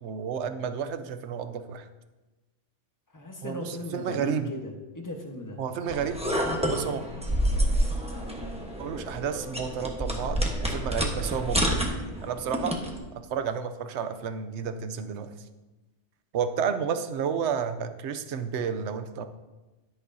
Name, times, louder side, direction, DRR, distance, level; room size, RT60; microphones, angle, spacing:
voice 1, 0.0-1.9 3.4-4.5 5.6-6.2 6.7-7.0 8.8-10.4 10.7-12.8 13.3-15.3 16.3-19.2, right 7 dB, 80° right, 10 dB, 0.9 m, -31 dB
voice 2, 3.1-5.6, left 1 dB, 15° left, 2 dB, 1.1 m, -37 dB
sound 1, 5.9-13.0, equal, 5° right, 1.0 m, -29 dB
11.0 x 10.0 x 2.7 m, 1.1 s
omnidirectional pair, 1.2 m